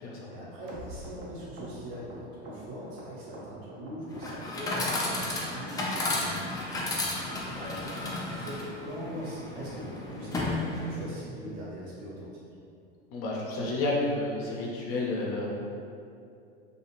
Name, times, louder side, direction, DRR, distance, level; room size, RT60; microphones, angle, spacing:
voice 1, 0.2-7.6 8.2-12.4, equal, 60° right, -8 dB, 1.0 m, -42 dB
sound 1, 0.7-3.9 4.2-4.8 5.1-5.7 6.0-6.1 6.3-6.6 6.9-7.0 7.2-7.4 7.7-7.8 8.1-8.3 8.6-8.7 9.0-9.2 9.5-9.6 9.9-10.1 10.4-10.5, right 1 dB, 40° right, 0.6 m, -46 dB
Chatter / Coin (dropping), 4.1-11.1, left 2 dB, 10° left, 0.3 m, -33 dB
voice 2, 7.6-8.1 13.1-15.5, left 2 dB, 45° left, -3 dB, 0.6 m, -31 dB
2.5 x 2.4 x 3.0 m, 2.5 s
hypercardioid pair, 105°, 31 cm